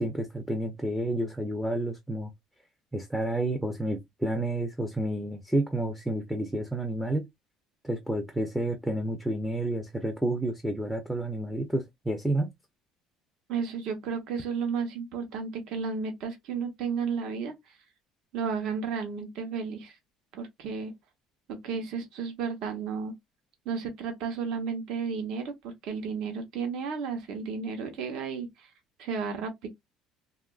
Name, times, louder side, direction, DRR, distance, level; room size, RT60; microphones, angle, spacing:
voice 1, 0.0-2.3 2.9-7.3 7.8-12.5, right 1 dB, 5° right, 0.4 m, -30 dB
voice 2, 13.5-17.8 18.3-19.9 20.3-20.9 21.5-23.1 23.6-28.7 29.0-29.7, right 5 dB, 65° right, 0.8 m, -33 dB
2.9 x 2.3 x 2.3 m
cardioid pair, 155°, 0 cm